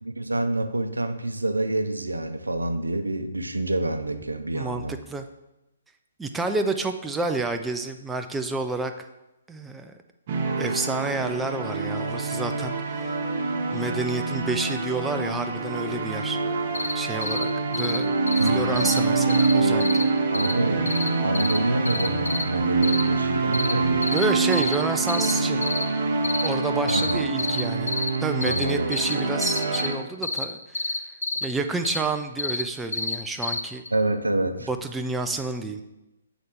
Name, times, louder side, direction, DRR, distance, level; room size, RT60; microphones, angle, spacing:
voice 1, 0.0-5.0 18.4-18.7 20.3-20.8 21.2-24.1 24.5-24.6 26.9-27.2 28.4-28.9 33.9-34.7, right 2 dB, 75° right, 7 dB, 0.6 m, -27 dB
voice 2, 4.5-4.8 5.1-5.2 6.2-9.1 9.5-9.9 10.6-13.1 13.7-16.4 16.9-20.1 24.1-25.7 26.4-30.9 31.4-33.8 34.7-35.8, right 3 dB, 5° right, 6 dB, 0.3 m, -29 dB
sound 1, 10.3-29.9, right 3 dB, 40° right, 0.9 m, -26 dB
sound 2, 16.7-16.9 17.2-17.4 17.7-18.0 18.3-18.5 18.8-19.0 19.3-19.5 19.8-20.0 20.3-20.5 20.9-21.1 21.3-21.6 21.8-22.4 22.8-23.0 23.5-23.7 24.0-24.2 24.5-24.8 25.1-25.3 25.6-25.8 26.2-26.5 26.9-27.1 27.4-27.6 27.9-28.1 28.4-28.6 28.9-29.1 29.4-29.9 30.2-30.4 30.7-31.4 31.8-32.0 32.4-32.6 32.9-33.2 33.4-33.6 33.9-34.0, left 3 dB, 70° left, 0.6 m, -28 dB
Mallet percussion, 23.2-25.6, equal, 15° left, 1.3 m, -40 dB
7.6 x 4.0 x 3.5 m, 0.95 s
figure-of-eight pair, 130°, 0 cm